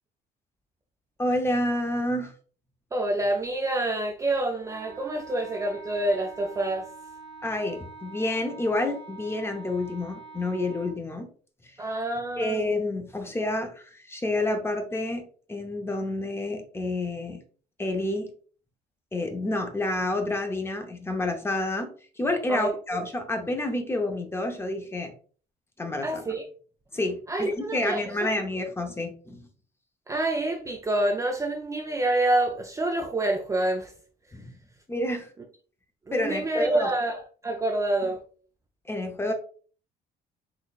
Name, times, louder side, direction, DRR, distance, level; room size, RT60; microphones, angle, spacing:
voice 1, 1.2-2.3 7.4-11.3 12.4-17.4 17.8-18.3 19.1-21.9 22.2-25.1 25.8-26.3 26.9-29.5 34.3-34.6 34.9-35.3 36.1-36.9 38.9-39.3, left 2 dB, 15° left, 0.7 m, -29 dB
voice 2, 2.9-6.9 11.8-12.6 22.5-22.7 26.0-26.4 27.3-28.0 30.1-33.9 36.1-38.2, right 2 dB, 20° right, 0.5 m, -27 dB
Wind instrument woodwind instrument, 4.6-11.0, right 4 dB, 45° left, 1.2 m, -45 dB
4.0 x 3.0 x 2.3 m
cardioid pair, 110°, 17 cm